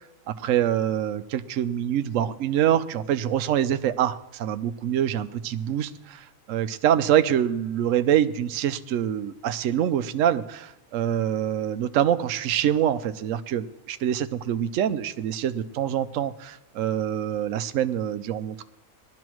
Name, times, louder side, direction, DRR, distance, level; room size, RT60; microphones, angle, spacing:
voice 1, 0.3-18.6, right 10 dB, 65° right, 10 dB, 0.9 m, -25 dB
20.0 x 12.0 x 3.1 m, 0.87 s
omnidirectional pair, 1.6 m